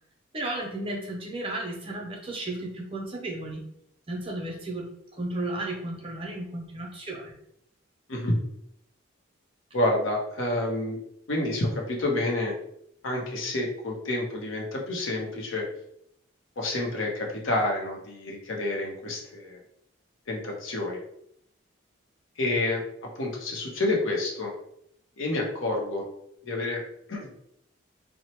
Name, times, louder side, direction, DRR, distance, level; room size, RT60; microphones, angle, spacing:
voice 1, 0.3-3.6 4.1-7.3, right 2 dB, 25° right, 0 dB, 0.5 m, -34 dB
voice 2, 9.7-11.0 11.3-12.5 13.0-15.7 16.6-19.6 20.3-21.0 22.4-22.8 23.2-24.5 25.2-26.0 26.4-26.8 27.1-27.3, left 2 dB, 70° left, 0 dB, 0.7 m, -28 dB
3.0 x 2.1 x 2.9 m, 0.73 s
head